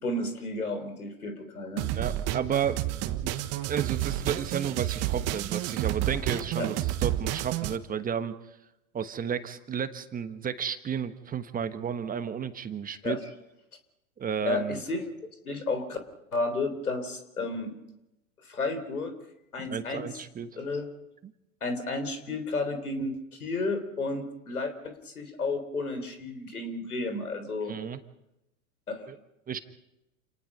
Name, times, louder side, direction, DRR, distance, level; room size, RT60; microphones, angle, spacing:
voice 1, 0.0-1.9 6.6-6.7 13.0-13.2 14.5-15.1 15.4-16.0 16.3-17.7 18.4-19.1 19.5-20.1 20.6-20.9 21.6-27.7 28.9-29.1, left 2 dB, 90° left, 9 dB, 3.9 m, -32 dB
sound 1, 1.8-7.8, right 14 dB, 35° right, 1.4 m, -30 dB
voice 2, 1.9-2.8 3.2-3.4 3.7-8.3 8.9-13.2 14.2-14.8 19.6-20.5 21.2-21.3 27.7-28.0 29.1-29.2 29.5-29.6, right 8 dB, 20° right, 10 dB, 1.3 m, -32 dB
28.5 x 19.5 x 5.5 m, 0.88 s
hypercardioid pair, 100°, 43 cm